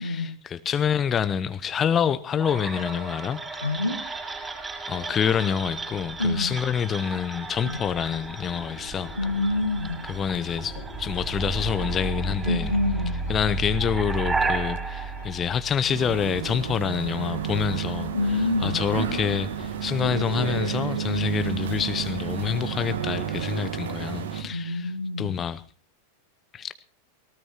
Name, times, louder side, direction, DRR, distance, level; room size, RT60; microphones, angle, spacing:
voice 1, 0.0-3.4 4.9-9.1 10.1-12.7 13.3-24.9 25.2-25.6 26.5-26.7, left 8 dB, 25° left, 0.7 m, -27 dB
sound 1, 2.4-16.3, right 3 dB, 15° right, 6.2 m, -33 dB
voice 2, 3.6-4.0 6.2-6.5 7.6-7.8 9.1-10.0 12.4-13.2 18.1-18.8 24.5-25.3, left 2 dB, 85° left, 2.0 m, -26 dB
sound 2, 7.9-23.3, left 4 dB, 60° left, 1.9 m, -46 dB
sound 3, 15.9-24.4, right 8 dB, 60° right, 1.6 m, -30 dB
19.0 x 19.0 x 3.0 m
figure-of-eight pair, 90°, 0 cm